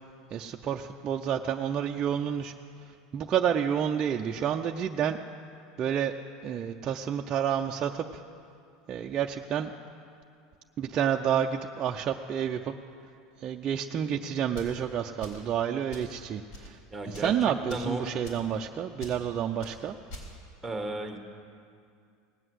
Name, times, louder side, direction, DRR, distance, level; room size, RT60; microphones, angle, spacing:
voice 1, 0.3-2.5 3.1-5.2 5.8-6.1 6.4-8.2 8.9-9.7 10.8-12.7 13.4-16.8 17.1-20.0, right 8 dB, 30° right, 2 dB, 0.5 m, -29 dB
sound 1, 14.5-14.8 15.2-15.5 15.9-16.1 16.5-16.7 17.1-17.3 17.7-17.9 18.2-18.5 19.0-19.2 19.6-19.7 20.1-20.3, left 1 dB, 70° left, 4.1 m, -44 dB
voice 2, 16.9-17.3 17.7-18.0 20.6-21.2, right 1 dB, ahead, 4 dB, 1.5 m, -33 dB
18.0 x 8.0 x 7.8 m, 2.4 s
supercardioid pair, 135°, 2 cm